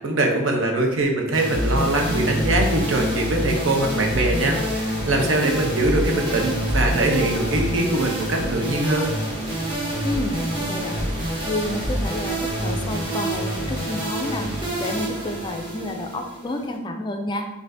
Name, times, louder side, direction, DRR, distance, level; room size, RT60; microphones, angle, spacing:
voice 1, 0.0-9.1, right 2 dB, 70° right, 2 dB, 0.7 m, -22 dB
sound 1, 1.3-16.7, right 1 dB, 25° right, 1.0 m, -26 dB
voice 2, 10.0-11.1 11.4-14.5 14.8-17.5, left 1 dB, 25° left, 4 dB, 0.3 m, -29 dB
5.4 x 2.6 x 2.6 m, 0.94 s
head